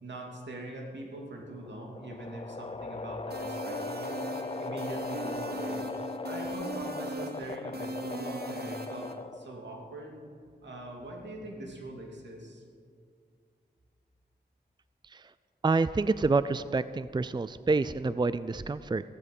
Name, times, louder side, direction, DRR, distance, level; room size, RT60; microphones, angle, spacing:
voice 1, 0.0-4.2 4.6-5.9 6.2-10.2 10.6-12.6, right 1 dB, 90° right, -1 dB, 2.8 m, -42 dB
sound 1, 1.4-9.6, left 3 dB, 30° left, 0.5 m, -39 dB
sound 2, 3.3-9.1, right 2 dB, 65° right, 1.6 m, -39 dB
voice 2, 15.6-19.0, right 3 dB, 25° right, 15 dB, 0.5 m, -27 dB
15.5 x 15.0 x 5.5 m, 2.2 s
cardioid pair, 50°, 18 cm